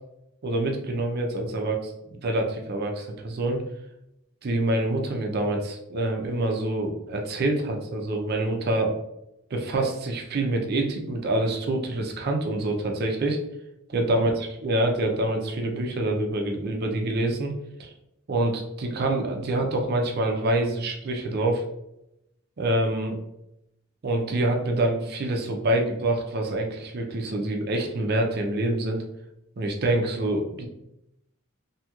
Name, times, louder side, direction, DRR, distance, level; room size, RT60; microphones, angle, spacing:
voice 1, 0.4-3.6 4.4-8.9 9.5-13.4 13.9-14.3 14.6-17.5 17.8-17.9 18.3-21.6 22.6-23.2 24.0-29.0 29.6-30.7, right 1 dB, 50° right, 2 dB, 0.5 m, -26 dB
2.9 x 2.7 x 2.3 m, 0.85 s
head